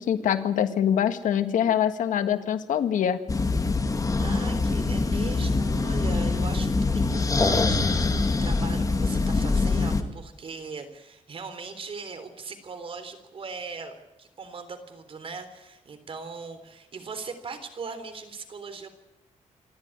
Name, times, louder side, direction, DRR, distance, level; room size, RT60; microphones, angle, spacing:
voice 1, 0.0-3.2, left 9 dB, 85° left, 9 dB, 1.7 m, -24 dB
sound 1, 3.3-10.0, left 3 dB, 25° left, 2.1 m, -24 dB
voice 2, 4.2-18.9, right 4 dB, 45° right, 9 dB, 3.6 m, -39 dB
27.0 x 13.0 x 9.7 m, 1.0 s
cardioid pair, 125°, 13 cm